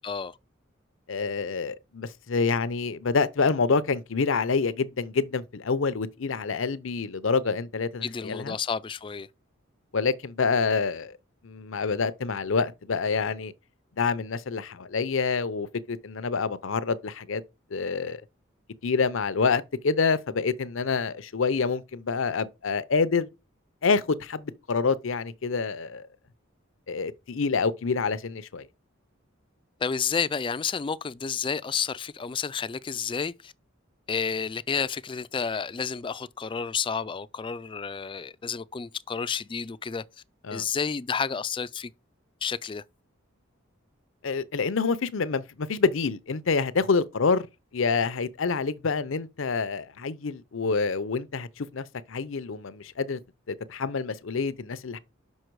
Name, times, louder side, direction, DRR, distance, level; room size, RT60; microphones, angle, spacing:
voice 1, 0.0-0.4 8.0-9.3 29.8-33.5 34.1-40.0 40.5-41.9 42.4-42.8, left 6 dB, 25° left, 0.3 m, -30 dB
voice 2, 1.1-8.6 9.9-11.1 11.4-13.5 14.0-17.4 17.7-18.2 18.8-23.3 23.8-26.1 26.9-28.7 40.5-40.6 44.2-47.5 47.7-53.2 53.5-55.0, left 4 dB, 75° left, 0.6 m, -27 dB
6.4 x 5.4 x 4.6 m
head